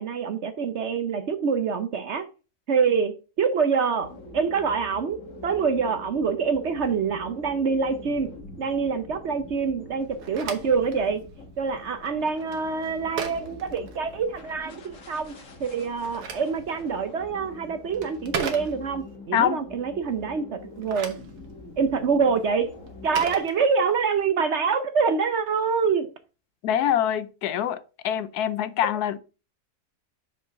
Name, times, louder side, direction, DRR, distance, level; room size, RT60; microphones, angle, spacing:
voice 1, 0.0-2.2 2.7-8.3 8.6-11.2 11.6-15.3 15.6-21.2 21.8-22.7 23.0-26.1, right 5 dB, 55° right, 0.9 m, -26 dB
sound 1, 4.0-23.4, left 2 dB, 55° left, 1.7 m, -44 dB
Telephone, 10.0-14.5 15.8-19.2 20.6-24.2, right 5 dB, 85° right, 1.7 m, -38 dB
voice 2, 26.6-29.2, left 10 dB, 80° left, 1.2 m, -25 dB
6.0 x 4.9 x 5.7 m
omnidirectional pair, 1.7 m